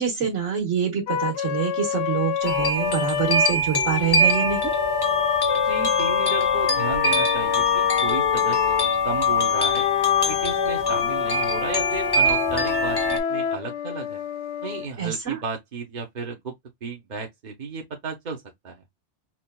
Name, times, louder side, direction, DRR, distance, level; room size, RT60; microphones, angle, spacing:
voice 1, 0.0-4.7 15.0-15.4, right 8 dB, 85° right, 1.6 m, -26 dB
Wind instrument woodwind instrument, 1.1-3.6 4.2-8.9 9.5-14.9, left 8 dB, 70° left, 0.9 m, -28 dB
sound 1, 2.4-13.2, left 3 dB, 25° left, 0.5 m, -23 dB
voice 2, 5.6-9.9 10.3-14.2 14.6-16.5 16.8-18.8, right 4 dB, 45° right, 0.8 m, -34 dB
5.8 x 2.4 x 2.2 m
omnidirectional pair, 1.2 m